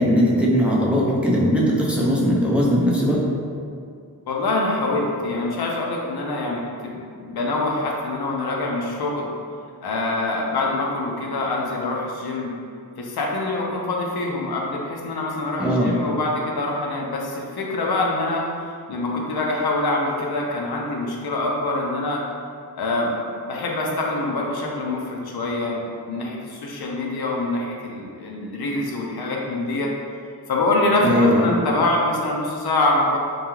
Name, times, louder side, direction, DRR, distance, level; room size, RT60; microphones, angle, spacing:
voice 1, 0.0-3.2 15.6-16.0 31.0-31.6, equal, 5° right, -5 dB, 0.4 m, -19 dB
voice 2, 4.3-9.3 9.8-12.5 13.0-18.4 18.9-22.2 22.7-23.1 23.4-29.9 30.5-33.2, left 2 dB, 80° left, -2 dB, 0.5 m, -25 dB
2.3 x 2.2 x 3.0 m, 2.3 s
wide cardioid pair, 60°, 38 cm